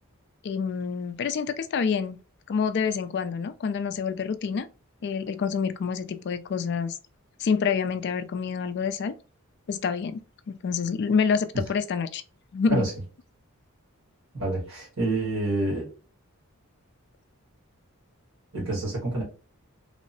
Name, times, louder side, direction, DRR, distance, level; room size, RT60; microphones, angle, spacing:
voice 1, 0.4-2.2 2.5-4.7 5.0-7.0 7.4-9.1 9.7-10.2 10.5-12.2 12.5-12.9, left 6 dB, 50° left, 0.3 m, -27 dB
voice 2, 14.4-15.9 18.5-19.2, right 2 dB, 70° right, 1.6 m, -27 dB
3.5 x 2.1 x 2.6 m
head